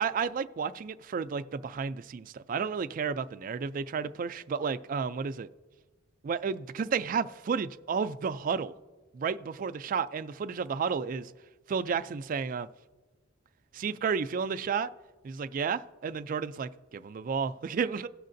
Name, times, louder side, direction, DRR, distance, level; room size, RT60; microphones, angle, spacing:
voice 1, 0.0-5.5 6.2-8.7 9.1-11.3 11.7-12.7 13.7-14.9 15.2-18.1, right 6 dB, 40° right, 0.3 m, -32 dB
17.0 x 6.4 x 2.6 m
head